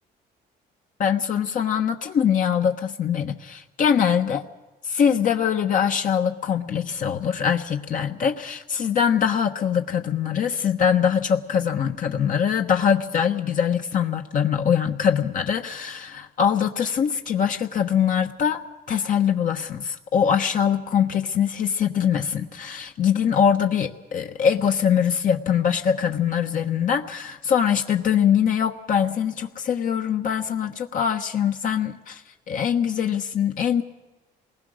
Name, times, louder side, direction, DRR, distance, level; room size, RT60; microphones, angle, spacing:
voice 1, 1.0-4.4 4.9-18.6 18.9-33.8, left 8 dB, 50° left, 4 dB, 1.2 m, -23 dB
27.5 x 20.0 x 6.5 m, 1.1 s
cardioid pair, 110°, 17 cm